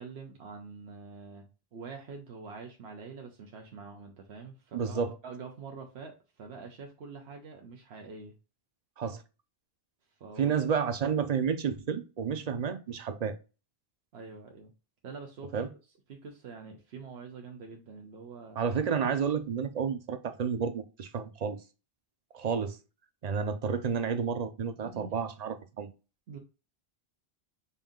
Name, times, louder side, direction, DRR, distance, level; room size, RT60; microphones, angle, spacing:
voice 1, 0.0-1.5 1.7-8.3 10.2-10.6 14.1-14.7 15.0-15.7 16.1-18.6 24.8-25.1 26.3-26.4, right 4 dB, 85° right, 1.0 m, -45 dB
voice 2, 4.7-5.1 9.0-9.2 10.4-13.3 15.5-15.7 18.6-21.6 22.3-22.8 23.2-25.9, right 6 dB, 50° right, 0.6 m, -30 dB
5.4 x 2.7 x 3.6 m
omnidirectional pair, 1.0 m